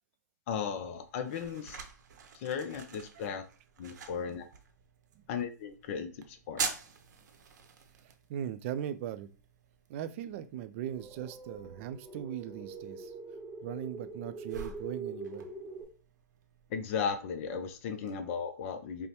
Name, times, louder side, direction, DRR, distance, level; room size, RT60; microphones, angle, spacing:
voice 1, 0.5-1.8 2.3-3.4 3.8-4.4 5.3-6.6 16.7-19.1, left 6 dB, 45° left, 8 dB, 0.5 m, -36 dB
sound 1, 0.6-18.1, right 5 dB, 75° right, 0.8 m, -46 dB
voice 2, 8.0-9.3 9.9-13.1 13.6-15.5, right 10 dB, 45° right, 12 dB, 0.4 m, -39 dB
sound 2, 10.9-15.8, right 4 dB, 10° right, 0.8 m, -44 dB
5.4 x 2.1 x 2.9 m, 0.36 s
hypercardioid pair, 135°, 10 cm